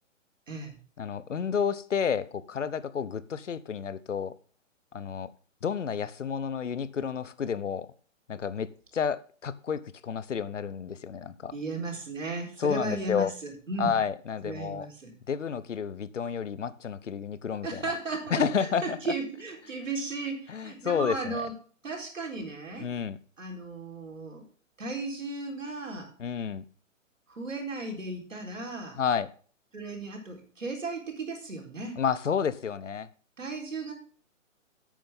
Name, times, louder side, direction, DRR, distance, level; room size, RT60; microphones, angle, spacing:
voice 1, 0.5-0.8 11.5-13.9 14.4-15.1 17.6-21.5 21.8-22.9 23.4-24.5 24.8-26.1 27.3-29.0 29.7-32.0 33.4-33.9, right 3 dB, 75° right, 4.1 m, -35 dB
voice 2, 1.0-4.4 4.9-5.3 5.6-7.9 8.3-11.5 12.6-13.3 13.8-14.9 15.3-17.8 18.3-19.0 20.5-21.3 22.8-23.2 26.2-26.6 29.0-29.3 32.0-33.1, left 7 dB, 65° left, 0.9 m, -30 dB
10.5 x 8.8 x 3.6 m
figure-of-eight pair, 130°, 39 cm